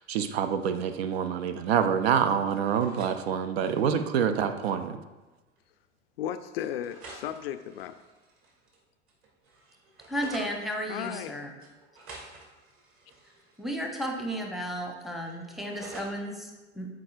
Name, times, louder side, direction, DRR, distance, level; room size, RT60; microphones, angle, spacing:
voice 1, 0.0-5.0, right 7 dB, 55° right, 10 dB, 0.6 m, -26 dB
sound 1, 1.0-1.7 1.9-3.2 3.5-3.9 5.0-5.1 5.5-5.6 6.6-8.8 9.1-10.6 11.6-14.4 14.7-16.1, right 3 dB, 35° right, 1.9 m, -50 dB
voice 2, 6.2-8.0 10.9-11.4, left 10 dB, 55° left, 10 dB, 0.4 m, -35 dB
voice 3, 10.1-11.5 13.6-16.9, equal, ahead, 1 dB, 0.9 m, -34 dB
11.5 x 4.8 x 2.5 m, 1.2 s
figure-of-eight pair, 80°, 37 cm